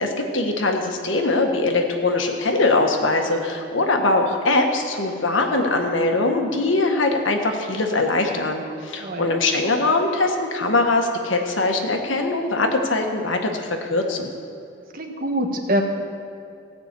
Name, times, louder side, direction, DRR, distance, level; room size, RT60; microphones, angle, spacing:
voice 1, 0.0-14.3, left 2 dB, 70° left, 3 dB, 1.5 m, -22 dB
voice 2, 9.0-9.3 14.9-15.8, equal, 45° right, 3 dB, 1.3 m, -24 dB
16.5 x 6.1 x 8.3 m, 2.5 s
head